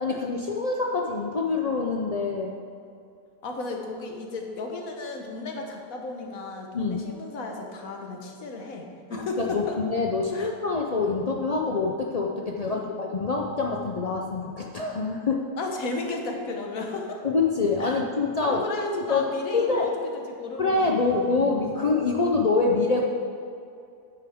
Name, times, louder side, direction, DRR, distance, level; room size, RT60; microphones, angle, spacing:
voice 1, 0.0-2.6 6.7-7.0 9.1-15.5 17.2-18.6 19.1-19.9 20.6-23.1, left 3 dB, 85° left, 0 dB, 0.3 m, -25 dB
voice 2, 3.4-9.8 10.3-10.5 12.6-12.9 15.6-17.2 17.8-18.0 18.4-21.3, left 3 dB, 65° left, 2 dB, 1.5 m, -34 dB
9.5 x 9.2 x 3.6 m, 2.5 s
omnidirectional pair, 1.6 m